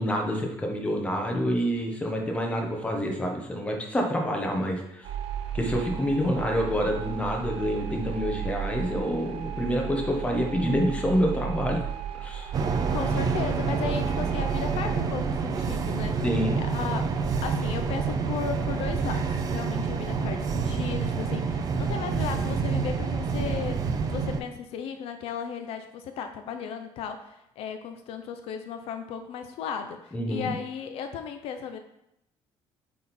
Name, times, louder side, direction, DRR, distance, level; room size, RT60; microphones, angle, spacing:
voice 1, 0.0-5.1 5.5-11.8 12.2-12.5 16.2-16.6 30.1-30.5, equal, 10° left, 1 dB, 1.1 m, -27 dB
sound 1, 5.0-15.0, right 9 dB, 70° right, 0.9 m, -35 dB
sound 2, 12.5-24.4, right 5 dB, 40° right, 0.6 m, -28 dB
voice 2, 12.9-16.3 16.6-17.1 17.4-23.8 24.1-31.8, left 7 dB, 70° left, 7 dB, 0.6 m, -35 dB
8.5 x 3.7 x 4.3 m, 0.81 s
cardioid pair, 165°, 10 cm